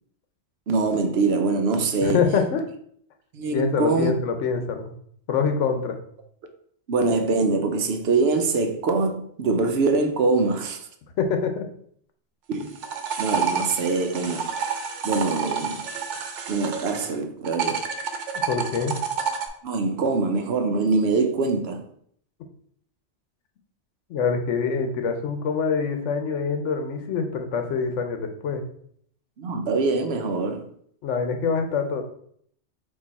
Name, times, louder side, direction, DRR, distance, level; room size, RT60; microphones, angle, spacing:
voice 1, 0.7-2.2 3.3-4.1 6.9-10.8 12.5-12.8 13.2-14.5 15.0-15.8 16.5-17.8 19.6-21.8 29.4-30.7, right 3 dB, 65° right, 0.8 m, -23 dB
voice 2, 2.0-2.6 3.5-4.9 5.3-6.0 11.2-11.6 18.5-19.0 24.1-28.6 31.0-32.0, left 5 dB, 90° left, 1.0 m, -25 dB
sound 1, 12.5-17.1 17.4-19.5, right 6 dB, 90° right, 1.0 m, -29 dB
4.6 x 2.7 x 4.0 m
omnidirectional pair, 1.2 m